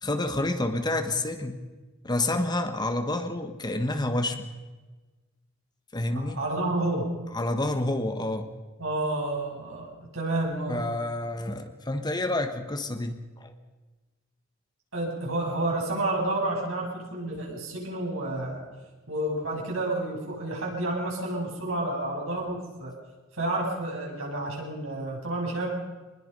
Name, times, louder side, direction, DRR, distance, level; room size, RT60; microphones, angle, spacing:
voice 1, 0.0-1.6 2.0-4.5 5.9-6.4 7.3-8.5 10.7-13.5, left 2 dB, 20° left, 7 dB, 1.4 m, -29 dB
voice 2, 6.4-7.1 8.8-10.8 14.9-18.6 19.1-22.9 23.3-25.7, right 2 dB, 75° right, -1 dB, 7.1 m, -30 dB
25.0 x 20.5 x 5.5 m, 1.3 s
head